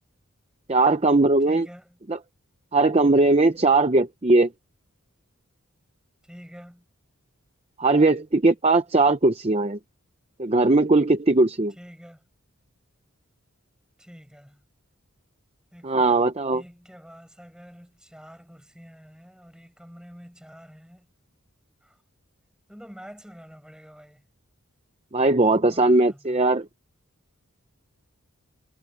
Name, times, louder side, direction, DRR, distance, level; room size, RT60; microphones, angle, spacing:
voice 1, 0.7-1.7 2.1-2.2 2.7-4.5 7.8-9.8 10.4-11.7 15.8-16.6 25.1-26.7, right 2 dB, 30° right, 0.7 m, -19 dB
voice 2, 1.5-2.0 6.3-6.9 11.8-12.2 14.0-14.6 15.7-16.2 16.5-21.1 21.8-22.0 22.7-24.2 25.5-26.5, equal, 5° right, 7.2 m, -47 dB
head